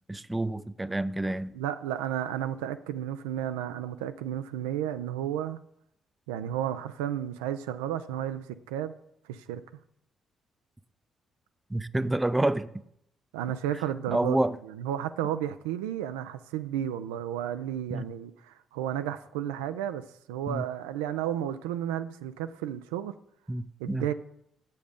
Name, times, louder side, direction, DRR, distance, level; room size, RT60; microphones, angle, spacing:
voice 1, 0.1-1.5 11.7-12.7 14.1-14.5 17.9-18.0 20.5-20.6 23.5-24.0, right 1 dB, 15° right, 0.4 m, -28 dB
voice 2, 1.5-5.6 6.3-8.9 9.3-9.6 13.3-14.4 14.7-23.1 23.8-24.1, right 11 dB, 90° right, 0.3 m, -32 dB
6.7 x 5.3 x 5.0 m
hypercardioid pair, 50°, 0 cm